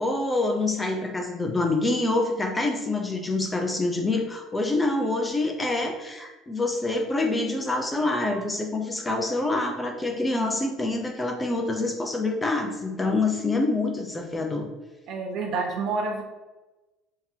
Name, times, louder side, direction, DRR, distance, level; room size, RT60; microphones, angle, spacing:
voice 1, 0.0-14.7, left 2 dB, 15° left, 3 dB, 0.5 m, -26 dB
voice 2, 15.1-16.2, right 3 dB, 60° right, 2 dB, 0.8 m, -28 dB
3.7 x 2.8 x 2.7 m, 1.1 s
cardioid pair, 110°, 0 cm